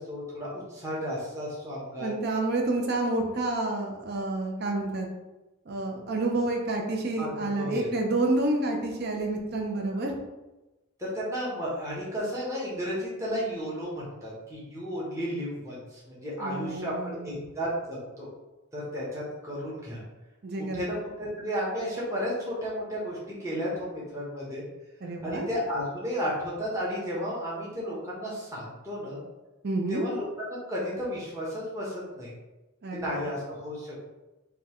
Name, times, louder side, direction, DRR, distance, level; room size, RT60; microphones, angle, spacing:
voice 1, 0.0-2.1 7.2-7.9 11.0-18.3 18.7-20.0 20.6-24.6 25.2-29.2 29.9-30.3 30.7-32.3 32.9-34.0, equal, 15° right, -6 dB, 0.9 m, -33 dB
voice 2, 2.0-5.1 5.7-10.1 16.4-17.4 20.4-20.8 25.0-25.5 29.6-30.0 32.8-33.2, right 2 dB, 50° right, 1 dB, 0.6 m, -29 dB
5.1 x 2.3 x 3.0 m, 1.1 s
head